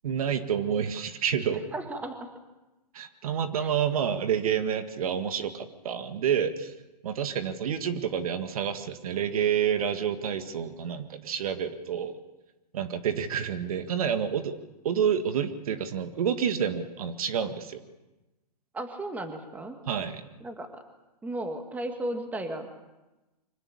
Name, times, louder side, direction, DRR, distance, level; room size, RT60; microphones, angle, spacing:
voice 1, 0.0-1.6 2.9-6.7 7.0-12.2 12.7-14.5 14.8-17.8 19.9-20.2, right 8 dB, 60° right, 9 dB, 1.9 m, -28 dB
voice 2, 1.7-2.3 3.6-3.7 18.7-19.8 20.4-20.8 21.2-22.7, right 1 dB, 5° right, 6 dB, 1.8 m, -35 dB
24.5 x 17.0 x 8.7 m, 1.0 s
hypercardioid pair, 140°, 21 cm